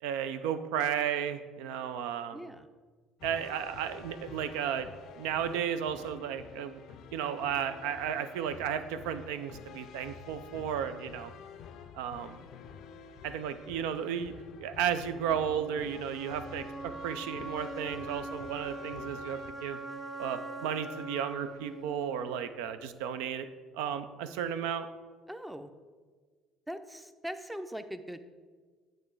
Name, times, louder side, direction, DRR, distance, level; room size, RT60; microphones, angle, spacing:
voice 1, 0.0-2.5 3.2-4.9 5.2-6.8 7.1-11.3 11.9-12.4 13.2-14.3 14.6-19.8 20.2-23.5 23.7-24.9, right 8 dB, 80° right, 11 dB, 0.4 m, -34 dB
voice 2, 2.3-2.7 25.3-25.7 26.7-28.2, equal, 5° right, 9 dB, 0.5 m, -41 dB
sound 1, 3.2-19.5, left 7 dB, 65° left, 0.4 m, -49 dB
sound 2, 14.9-22.9, right 2 dB, 35° right, 1.9 m, -43 dB
8.6 x 3.1 x 4.6 m, 1.5 s
hypercardioid pair, 70°, 0 cm